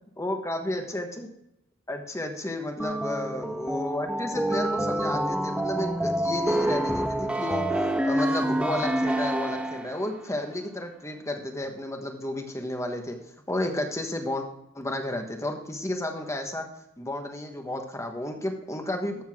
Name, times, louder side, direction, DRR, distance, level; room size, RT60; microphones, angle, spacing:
voice 1, 0.2-1.3 1.9-7.6 8.0-13.2 13.5-14.5 14.7-16.7 17.0-19.2, left 1 dB, 15° left, 4 dB, 1.3 m, -32 dB
sound 1, 2.8-10.1, right 1 dB, 5° right, 0.6 m, -27 dB
13.5 x 7.2 x 3.6 m, 0.79 s
head